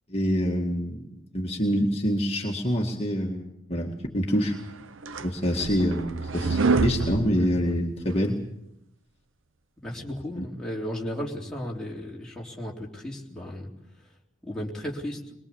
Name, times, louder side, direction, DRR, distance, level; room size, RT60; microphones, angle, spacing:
voice 1, 0.1-4.6 5.2-8.4 10.4-10.5, equal, 30° left, 0 dB, 2.0 m, -26 dB
sound 1, 4.6-8.3, right 3 dB, 80° right, 0.8 m, -27 dB
voice 2, 9.8-13.7 14.4-15.3, equal, 5° left, -4 dB, 3.6 m, -35 dB
23.0 x 22.0 x 7.1 m, 0.82 s
head